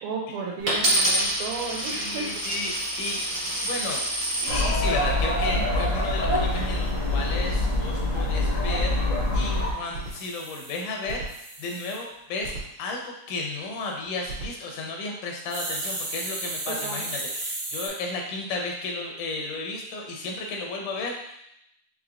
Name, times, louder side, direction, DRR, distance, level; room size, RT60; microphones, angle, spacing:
voice 1, 0.0-2.6 16.7-17.1, right 4 dB, 85° right, 0 dB, 2.3 m, -34 dB
Coin (dropping), 0.7-4.7 5.4-5.8, right 1 dB, 70° right, 0.4 m, -27 dB
voice 2, 1.9-3.2 3.6-4.0 4.4-9.0 9.3-12.5 12.8-21.4, left 3 dB, 90° left, 0 dB, 2.3 m, -33 dB
sound 1, 4.5-9.7, left 1 dB, 40° left, 0.7 m, -25 dB
sound 2, 6.5-7.5 9.8-12.0 12.4-12.6 14.0-14.4 15.5-17.9, right 2 dB, 55° right, 1.6 m, -35 dB
5.8 x 3.3 x 2.5 m, 0.76 s
omnidirectional pair, 3.5 m